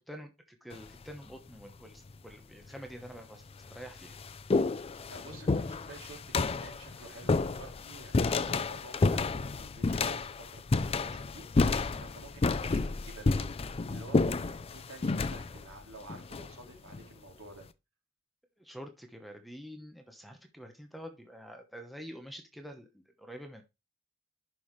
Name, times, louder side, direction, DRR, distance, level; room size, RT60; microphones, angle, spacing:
voice 1, 0.0-3.4 3.7-4.2 18.6-23.6, equal, ahead, 1.0 m, -47 dB
sound 1, 0.7-1.1 2.1-2.2 3.0-3.1 3.5-17.0, left 3 dB, 30° left, 0.4 m, -30 dB
voice 2, 5.1-11.5 11.8-17.6, right 2 dB, 80° right, 2.9 m, -51 dB
11.0 x 5.6 x 3.2 m
head